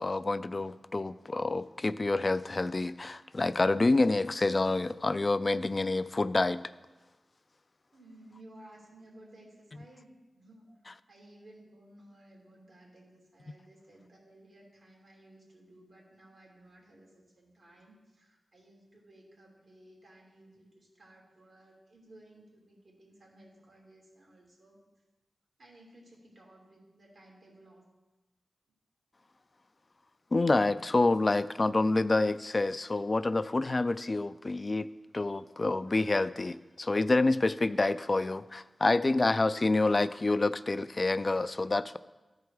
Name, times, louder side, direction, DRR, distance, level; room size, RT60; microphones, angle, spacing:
voice 1, 0.0-6.6 10.9-11.0 30.3-34.9 35.1-42.0, left 2 dB, 40° left, 14 dB, 0.3 m, -28 dB
voice 2, 7.9-10.8 11.1-17.1 17.4-24.8 25.6-27.8, right 1 dB, 70° right, -2 dB, 2.9 m, -56 dB
13.5 x 4.7 x 4.8 m, 1.1 s
cardioid pair, 50°, 0 cm